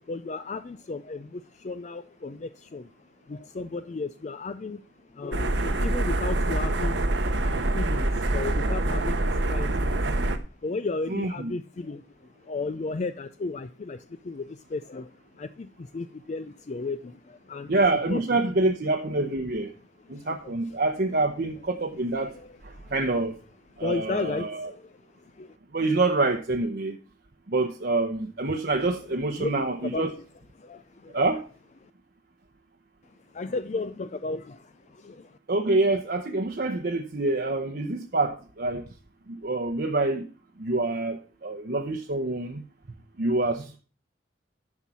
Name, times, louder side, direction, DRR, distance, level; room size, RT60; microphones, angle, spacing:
voice 1, 0.0-4.8 5.1-17.7 18.0-18.2 20.0-20.8 22.3-22.9 23.7-25.6 28.5-29.1 29.4-29.5 29.8-30.2 30.6-31.2 31.8-31.9 33.3-35.4, left 3 dB, 40° left, 0.4 m, -35 dB
sound 1, 5.3-10.4, right 2 dB, 75° right, 1.0 m, -25 dB
voice 2, 11.1-11.5 17.7-19.7 20.1-22.4 22.9-23.3 23.8-24.7 25.7-27.0 27.5-30.1 31.1-31.4 35.5-38.8 39.3-40.2 40.6-42.6 43.2-43.8, right 2 dB, 55° right, 0.8 m, -26 dB
10.5 x 5.5 x 6.1 m
head